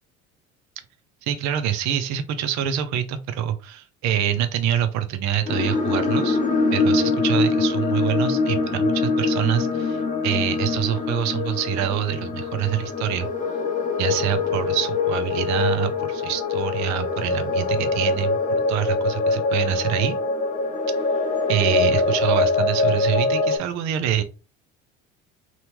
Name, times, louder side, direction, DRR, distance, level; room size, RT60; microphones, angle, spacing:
voice 1, 1.2-6.4 6.7-13.3 14.0-18.4 18.7-20.2 21.5-24.2, right 10 dB, 50° right, 9 dB, 0.5 m, -25 dB
sound 1, 5.5-23.6, left 3 dB, 20° left, 0.7 m, -23 dB
2.8 x 2.2 x 2.9 m, 0.32 s
hypercardioid pair, 70°, 36 cm